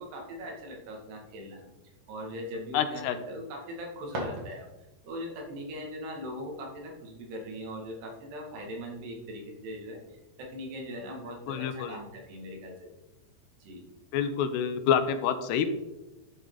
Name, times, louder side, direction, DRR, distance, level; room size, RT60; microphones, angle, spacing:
voice 1, 0.0-1.7 2.1-4.7 5.0-12.9 13.6-13.9, equal, 80° right, 1 dB, 4.2 m, -40 dB
voice 2, 2.7-3.2 11.5-12.0 14.1-15.7, left 8 dB, 85° left, 9 dB, 3.0 m, -27 dB
sound 1, 4.0-5.1, equal, 45° right, 2.3 m, -39 dB
13.0 x 7.7 x 3.9 m, 1.0 s
omnidirectional pair, 4.7 m